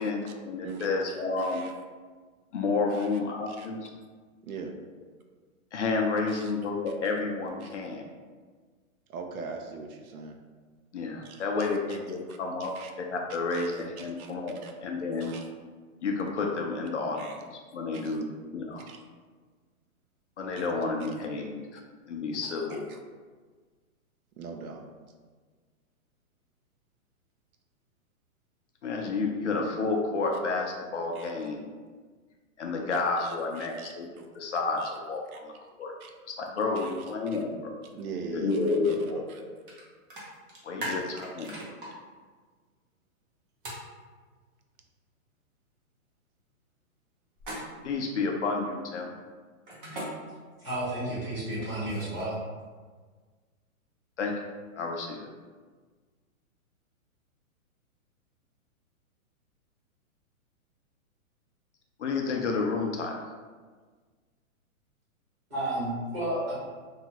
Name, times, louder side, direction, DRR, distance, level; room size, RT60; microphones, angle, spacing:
voice 1, 0.0-1.7 2.5-3.9 5.7-8.0 10.9-12.7 13.0-14.5 14.8-15.3 16.0-17.3 17.7-18.9 20.4-21.8 22.1-22.8 28.8-31.7 32.6-34.1 34.3-35.5 35.8-35.9 36.3-37.7 38.3-39.6 40.6-41.5 47.8-49.1 54.2-54.3 54.8-55.3 62.0-63.1, left 3 dB, 55° left, 1 dB, 0.5 m, -30 dB
voice 2, 0.6-1.0 1.4-1.8 2.9-3.1 3.5-3.7 4.4-4.7 6.3-6.5 7.6-7.7 9.1-10.4 11.2-11.8 12.3-12.9 13.5-14.3 14.6-14.7 15.1-15.5 17.2-17.4 17.9-18.2 18.9-19.0 20.5-20.7 22.4-23.0 24.4-24.8 31.1-31.3 33.2-34.3 34.8-34.9 35.3-35.4 36.0-36.1 36.8-36.9 37.3-37.4 37.9-39.4 40.8-41.0 41.4-41.7, right 4 dB, 85° right, 4 dB, 0.6 m, -43 dB
sound 1, 39.7-39.8 40.1-41.9 43.6-43.8 47.4-47.9 49.7-50.1 51.4-52.3, equal, 40° right, 0.7 m, -39 dB
voice 3, 50.6-52.3 65.5-66.5, right 1 dB, 20° right, -10 dB, 1.1 m, -31 dB
2.8 x 2.3 x 2.8 m, 1.5 s
hypercardioid pair, 175°, 42 cm